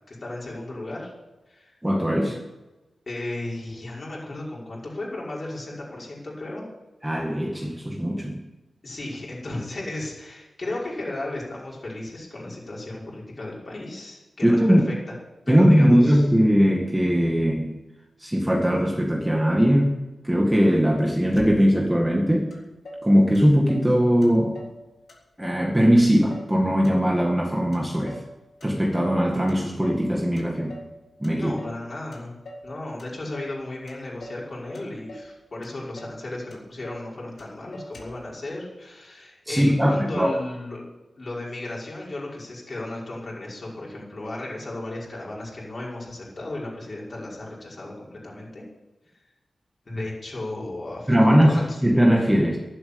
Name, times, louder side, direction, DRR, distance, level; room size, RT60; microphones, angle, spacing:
voice 1, 0.1-1.1 1.5-1.7 2.2-2.3 3.1-6.7 8.8-15.2 15.5-16.2 31.3-32.3 32.6-40.8 41.2-48.6 49.9-51.8, left 2 dB, 40° left, -4 dB, 5.6 m, -35 dB
voice 2, 1.8-2.3 7.0-8.4 14.4-14.9 15.5-17.7 18.2-20.0 20.2-22.5 23.0-24.6 25.4-28.2 28.6-30.7 31.2-31.5 39.5-40.3 51.1-51.5 51.8-52.6, equal, 10° right, 0 dB, 1.9 m, -20 dB
Motor vehicle (road), 21.3-22.0 22.5-22.6 22.8-23.9 24.2-24.8 25.1-25.7 26.0-27.4 27.7-28.3 28.6-29.2 29.5-30.1 30.4-30.9 31.2-31.8 32.1-32.7 33.0-33.6 33.9-34.5 34.7-35.3 35.6-35.7 36.0-36.2 36.5-37.1 37.4-37.5 37.7-38.3, left 1 dB, 60° left, 3.5 m, -43 dB
12.0 x 11.5 x 8.7 m, 1.1 s
wide cardioid pair, 120°, 0 cm